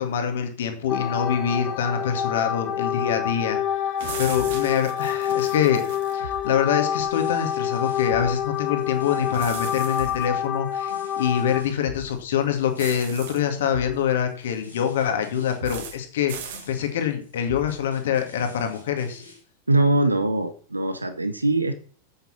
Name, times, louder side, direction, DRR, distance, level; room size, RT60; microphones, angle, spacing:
voice 1, 0.0-3.6 4.2-5.8 6.1-16.3 16.7-19.2, left 8 dB, 60° left, 6 dB, 2.1 m, -25 dB
sound 1, 0.9-11.6, left 10 dB, 30° left, 1.8 m, -27 dB
sound 2, 4.0-6.2 9.3-10.3 12.8-13.4 15.6-16.0 16.3-16.7, right 7 dB, 55° right, 2.1 m, -38 dB
sound 3, 4.3-19.4, equal, 80° left, 3.6 m, -44 dB
voice 2, 19.7-21.7, right 2 dB, 80° right, 10 dB, 0.8 m, -22 dB
8.8 x 8.2 x 5.9 m, 0.42 s
figure-of-eight pair, 90°, 0 cm